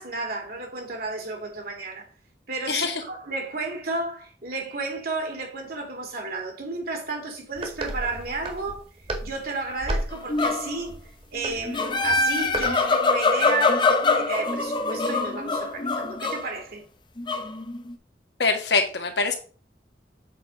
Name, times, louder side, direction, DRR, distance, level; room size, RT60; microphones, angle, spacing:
voice 1, 0.0-2.1 2.5-8.8 9.2-11.0 11.3-16.8, right 3 dB, 60° right, 2.4 m, -32 dB
sound 1, 7.5-12.8, right 1 dB, 35° right, 1.8 m, -33 dB
sound 2, 10.1-10.8 11.4-16.5 17.2-17.9, left 3 dB, 25° left, 0.7 m, -24 dB
voice 2, 18.4-19.3, left 4 dB, 70° left, 1.5 m, -23 dB
7.5 x 4.1 x 5.0 m
head